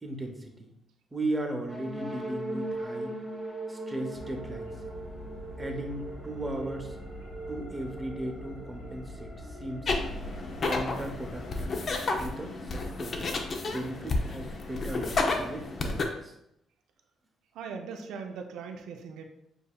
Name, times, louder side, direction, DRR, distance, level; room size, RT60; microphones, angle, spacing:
voice 1, 0.0-0.7 1.1-3.1 3.7-4.7 5.6-7.0 7.5-9.3 9.6-9.9 10.6-11.7 12.2-13.2 13.7-16.3, right 1 dB, 20° right, 3 dB, 0.8 m, -36 dB
sound 1, 1.6-9.3, right 1 dB, 5° left, 1.0 m, -39 dB
sound 2, 4.1-12.0, left 1 dB, 70° left, 1.3 m, -44 dB
sound 3, 9.9-16.0, left 3 dB, 45° left, 0.6 m, -31 dB
voice 2, 17.5-19.2, right 5 dB, 85° right, 4 dB, 0.5 m, -39 dB
6.8 x 2.7 x 2.3 m, 0.79 s
cardioid pair, 90°, 0 cm